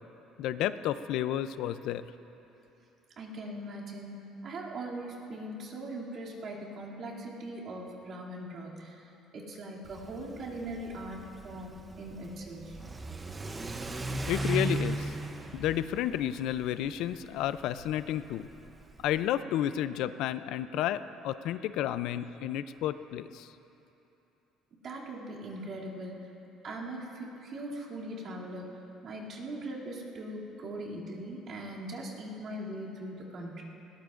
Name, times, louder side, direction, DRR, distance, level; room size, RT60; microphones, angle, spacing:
voice 1, 0.4-2.0 14.3-15.2 15.5-18.5 19.0-23.5, left 12 dB, 70° left, 13 dB, 0.4 m, -31 dB
voice 2, 3.2-12.8 24.8-26.3 26.6-28.7 29.0-33.6, right 1 dB, 45° right, -5 dB, 2.5 m, -40 dB
Car / Accelerating revving vroom, 9.9-19.3, right 2 dB, 15° right, 0.6 m, -37 dB
20.5 x 19.0 x 2.5 m, 2.9 s
cardioid pair, 160°, 0 cm